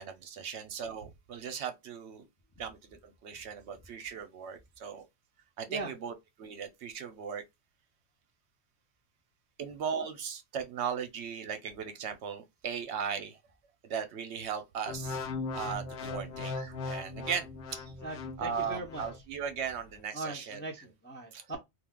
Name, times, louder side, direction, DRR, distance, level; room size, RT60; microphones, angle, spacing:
voice 1, 0.0-2.2 2.6-5.1 5.6-6.1 6.4-7.4 9.6-13.4 13.8-15.2 15.5-17.9 18.4-20.6 21.3-21.5, right 7 dB, 70° right, 0.8 m, -37 dB
sound 1, 14.9-19.2 19.7-20.0, left 3 dB, 65° left, 0.8 m, -39 dB
voice 2, 18.0-19.0 20.1-21.6, right 2 dB, 15° left, 0.3 m, -39 dB
2.4 x 2.3 x 3.5 m
omnidirectional pair, 1.3 m